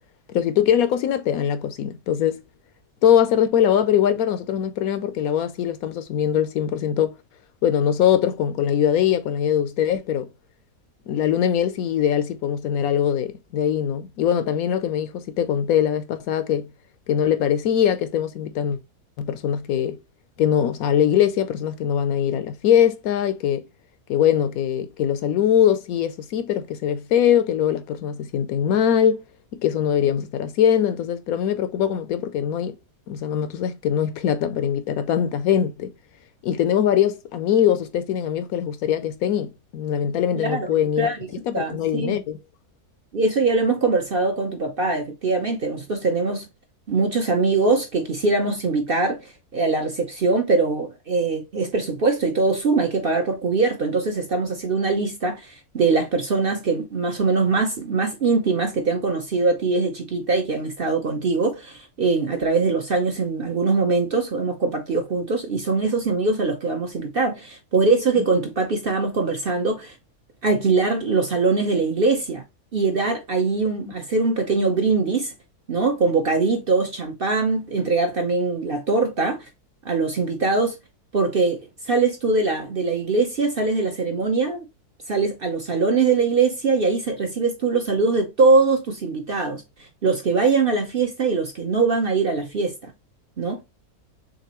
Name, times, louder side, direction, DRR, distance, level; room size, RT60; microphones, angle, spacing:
voice 1, 0.3-2.4 3.0-7.2 7.6-10.3 11.1-16.7 17.1-18.8 19.2-20.0 20.4-23.6 24.1-29.2 29.6-32.7 33.1-35.9 36.4-41.1 41.4-42.4, left 9 dB, 70° left, 1.0 m, -22 dB
voice 2, 40.4-41.2 41.5-42.2 43.1-46.4 46.9-69.9 70.4-72.4 72.7-75.3 75.7-79.4 79.8-80.8 81.1-84.6 85.1-89.6 90.0-92.9 93.4-93.6, right 3 dB, 45° right, 0.8 m, -22 dB
6.6 x 2.6 x 2.9 m
omnidirectional pair, 1.6 m